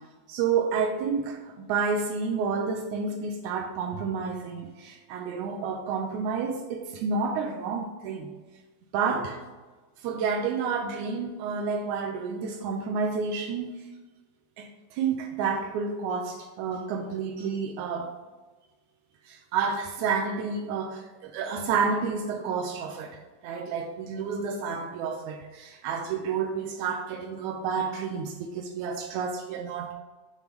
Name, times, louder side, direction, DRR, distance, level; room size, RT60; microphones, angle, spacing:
voice 1, 0.3-8.3 8.9-9.4 10.0-13.7 14.6-18.1 19.3-29.9, right 5 dB, 90° right, 1.7 m, -30 dB
7.0 x 3.1 x 5.1 m
omnidirectional pair, 4.0 m